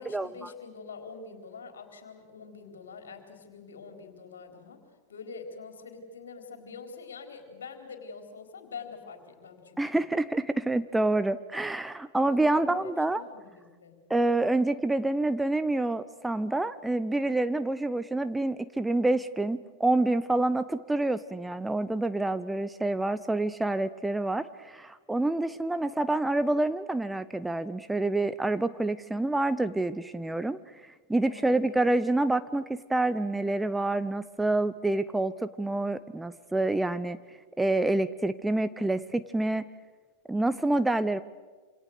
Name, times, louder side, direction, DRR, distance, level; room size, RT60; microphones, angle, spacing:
voice 1, 0.0-4.8 5.1-10.0 12.2-14.0 31.2-31.8, left 5 dB, 65° left, 5 dB, 4.2 m, -45 dB
voice 2, 9.8-13.2 14.1-30.6 31.1-37.2 37.6-39.7 40.3-41.2, right 2 dB, 5° right, 13 dB, 0.8 m, -27 dB
27.5 x 27.0 x 6.6 m, 1.4 s
figure-of-eight pair, 90°, 0 cm